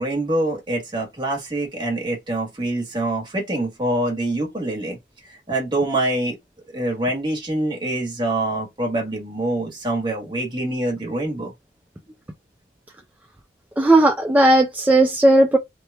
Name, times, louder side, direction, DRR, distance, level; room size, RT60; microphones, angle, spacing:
voice 1, 0.0-5.0 5.5-6.4 6.7-11.5, right 1 dB, 25° right, 1.3 m, -25 dB
voice 2, 13.8-15.6, right 1 dB, 10° right, 0.3 m, -15 dB
3.0 x 2.3 x 3.2 m
head